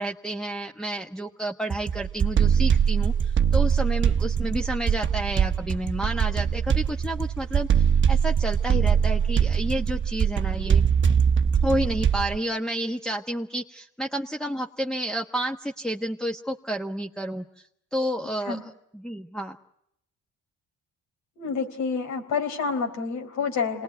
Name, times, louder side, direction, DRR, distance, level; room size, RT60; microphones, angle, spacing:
voice 1, 0.0-10.8 11.6-19.6, right 1 dB, ahead, 0 dB, 1.2 m, -30 dB
sound 1, 1.7-12.4, right 7 dB, 40° right, 1.0 m, -22 dB
voice 2, 21.4-23.8, left 5 dB, 80° left, 4 dB, 4.3 m, -28 dB
27.0 x 20.0 x 9.4 m, 0.79 s
cardioid pair, 90°, 30 cm